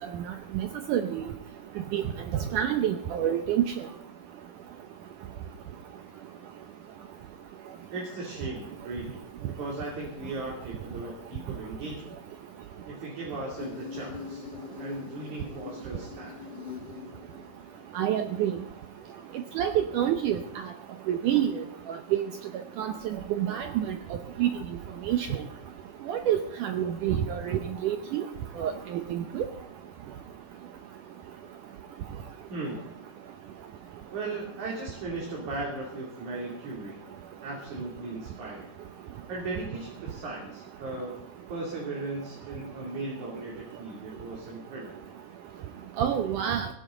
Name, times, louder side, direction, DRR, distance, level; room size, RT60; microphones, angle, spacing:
voice 1, 0.5-1.2 1.9-2.0 2.3-3.6 18.0-18.6 19.6-20.4 21.1-21.5 21.9-22.2 22.8-22.9 23.4-24.0 24.4-24.5 25.1-25.3 26.1-28.2 28.6-29.5 46.0-46.7, right 10 dB, 75° right, 7 dB, 1.9 m, -27 dB
voice 2, 7.9-9.2 9.6-12.2 12.9-14.4 14.8-16.3 32.5-32.8 34.1-37.0 37.4-38.7 39.3-41.1 41.5-45.0, right 2 dB, 50° right, -3 dB, 4.2 m, -37 dB
Insect, 13.6-18.6, left 6 dB, 65° left, 1.2 m, -43 dB
17.5 x 16.0 x 3.9 m, 0.77 s
omnidirectional pair, 4.5 m